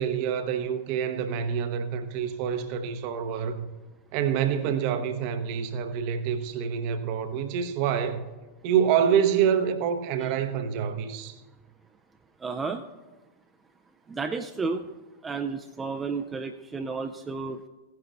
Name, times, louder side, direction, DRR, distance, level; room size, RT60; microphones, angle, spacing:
voice 1, 0.0-3.7 4.1-8.2 8.6-11.4, right 8 dB, 45° right, 0.9 m, -26 dB
voice 2, 12.4-12.8 14.1-14.9 15.2-17.6, right 4 dB, 15° right, 0.5 m, -32 dB
17.0 x 10.5 x 2.5 m
figure-of-eight pair, 90°, 0 cm